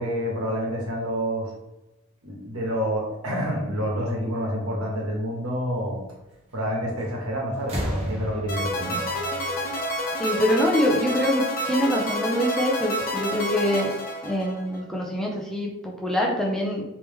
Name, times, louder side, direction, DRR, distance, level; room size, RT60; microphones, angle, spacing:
voice 1, 0.0-1.5 2.2-6.0 6.5-9.0, equal, 85° right, -2 dB, 1.2 m, -28 dB
sound 1, 7.0-7.3 7.6-10.3 11.5-11.6, equal, 30° right, 1.0 m, -33 dB
sound 2, 8.5-14.8, equal, 40° left, 0.9 m, -29 dB
voice 2, 10.2-13.9 14.2-16.8, equal, ahead, -3 dB, 0.5 m, -24 dB
3.3 x 3.0 x 3.5 m, 0.96 s
head